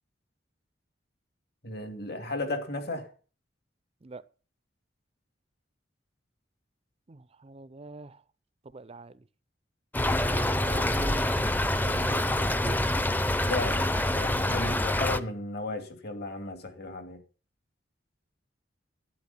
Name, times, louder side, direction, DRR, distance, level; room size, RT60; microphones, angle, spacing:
voice 1, 1.6-3.1 13.4-17.2, left 2 dB, 55° left, 2.8 m, -35 dB
voice 2, 7.1-8.2 8.7-9.2 10.2-11.4 11.8-13.1, right 2 dB, 30° right, 0.5 m, -42 dB
Stream / Trickle dribble, 9.9-15.2, left 1 dB, 10° left, 0.7 m, -26 dB
12.0 x 11.0 x 5.7 m
head